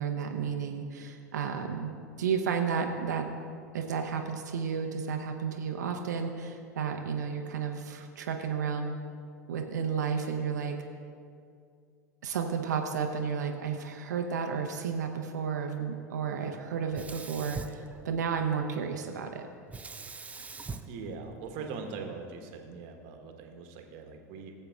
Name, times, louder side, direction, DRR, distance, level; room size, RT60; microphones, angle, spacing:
voice 1, 0.0-1.9 2.2-3.3 3.7-9.0 9.5-10.7 12.2-19.5, right 6 dB, 75° right, 4 dB, 0.7 m, -32 dB
Sink (filling or washing), 16.9-18.6 19.7-22.0, right 4 dB, 15° right, 0.5 m, -43 dB
voice 2, 20.9-24.5, right 5 dB, 55° right, 4 dB, 1.2 m, -41 dB
17.0 x 7.7 x 2.4 m, 2.3 s
hypercardioid pair, 85°, 9 cm